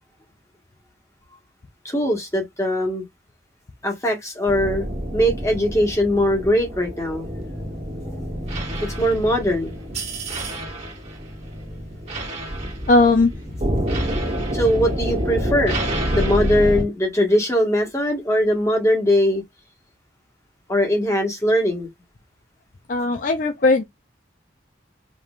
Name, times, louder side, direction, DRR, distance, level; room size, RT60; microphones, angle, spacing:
voice 1, 1.8-3.0 3.8-4.9 5.1-7.3 9.0-9.7 14.5-15.8 16.1-19.4 20.7-21.9, equal, 15° left, 1.5 m, -20 dB
sound 1, 4.5-16.8, right 1 dB, 35° right, 1.9 m, -27 dB
voice 2, 12.9-13.3 22.9-23.8, left 3 dB, 45° left, 0.4 m, -17 dB
5.2 x 3.1 x 2.4 m
head